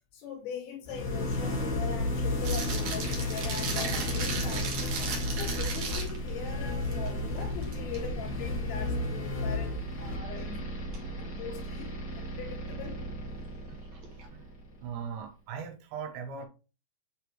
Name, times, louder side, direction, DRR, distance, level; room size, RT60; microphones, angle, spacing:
voice 1, 0.1-10.7 11.3-13.0, left 6 dB, 85° left, 4.3 m, -41 dB
sound 1, 0.9-14.7, left 1 dB, 50° left, 1.1 m, -33 dB
sound 2, 2.4-6.3 6.8-7.1 7.5-8.0 10.9-11.0 14.0-14.3, right 5 dB, 55° right, 2.3 m, -36 dB
voice 2, 14.8-16.5, right 6 dB, 80° right, 3.3 m, -39 dB
8.3 x 5.1 x 3.1 m
omnidirectional pair, 5.1 m